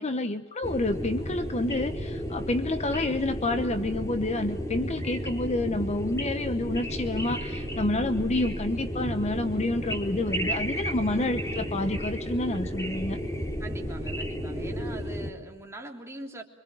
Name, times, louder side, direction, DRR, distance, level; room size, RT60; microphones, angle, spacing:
voice 1, 0.0-13.2, left 2 dB, 35° left, 10 dB, 0.9 m, -29 dB
sound 1, 0.6-15.3, equal, 15° left, 4.1 m, -33 dB
voice 2, 13.6-16.4, right 1 dB, 15° right, 1 dB, 3.1 m, -42 dB
26.0 x 25.0 x 7.7 m, 1.1 s
head